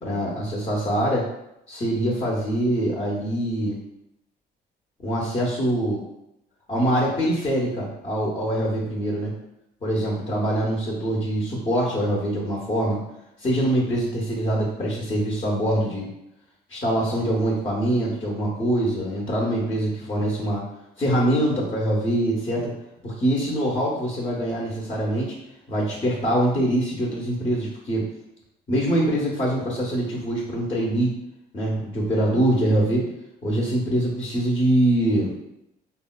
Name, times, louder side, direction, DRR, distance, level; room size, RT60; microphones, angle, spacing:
voice 1, 0.0-1.3 1.7-3.8 5.0-6.0 6.7-9.3 9.8-13.0 13.4-16.1 16.7-20.6 21.0-22.7 23.0-25.3 25.7-28.0 28.7-31.1 31.5-33.1 33.4-35.3, right 1 dB, 30° left, -4 dB, 0.7 m, -24 dB
3.5 x 2.1 x 2.2 m, 0.84 s
cardioid pair, 110°, 17 cm